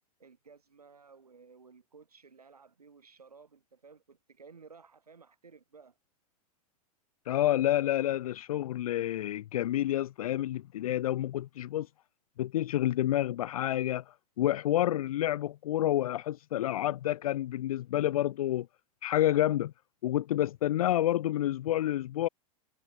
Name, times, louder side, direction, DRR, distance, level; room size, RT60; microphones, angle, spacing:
voice 1, 0.2-6.0, right 5 dB, 90° right, 2.2 m, -56 dB
voice 2, 7.3-11.9 12.4-18.7 19.0-19.7 20.0-22.3, left 13 dB, 70° left, 0.6 m, -29 dB
hypercardioid pair, 95°, 19 cm